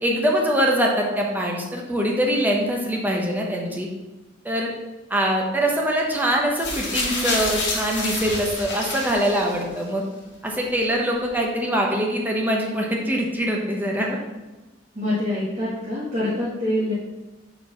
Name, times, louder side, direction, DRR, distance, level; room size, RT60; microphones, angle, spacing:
voice 1, 0.0-3.9 4.4-4.7 5.1-10.0 10.4-14.2, equal, 10° right, -1 dB, 1.0 m, -23 dB
sound 1, 6.5-9.8 10.7-10.8, left 2 dB, 65° left, 1.7 m, -28 dB
voice 2, 15.0-16.9, left 1 dB, 35° right, -9 dB, 1.7 m, -25 dB
4.7 x 4.6 x 5.8 m, 1.1 s
head